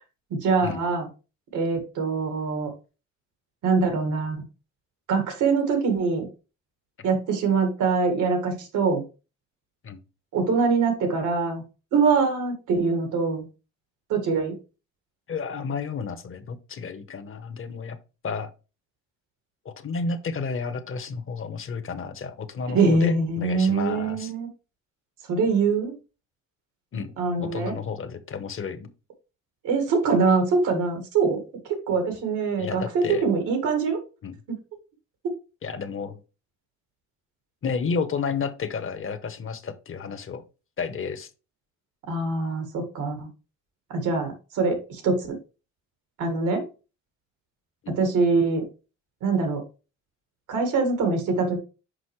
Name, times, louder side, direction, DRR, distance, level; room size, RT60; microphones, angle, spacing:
voice 1, 0.3-1.1 1.5-2.7 3.6-4.4 5.1-6.3 7.0-9.0 10.3-11.6 11.9-13.4 14.1-14.6 22.7-24.5 25.3-25.9 27.2-27.8 29.6-31.4 31.7-34.0 34.5-34.6 35.2-35.3 42.1-43.3 43.9-45.4 46.2-46.7 47.9-48.7 49.2-49.6 50.5-51.6, right 4 dB, 90° right, 6 dB, 1.9 m, -23 dB
voice 2, 15.3-18.0 18.2-18.5 19.6-24.3 26.9-27.1 27.4-28.9 32.6-33.3 34.2-34.3 35.6-36.2 37.6-40.4 40.8-41.3 47.8-47.9, left 5 dB, 45° left, 11 dB, 1.0 m, -31 dB
6.2 x 5.3 x 3.2 m, 0.31 s
cardioid pair, 90°, 30 cm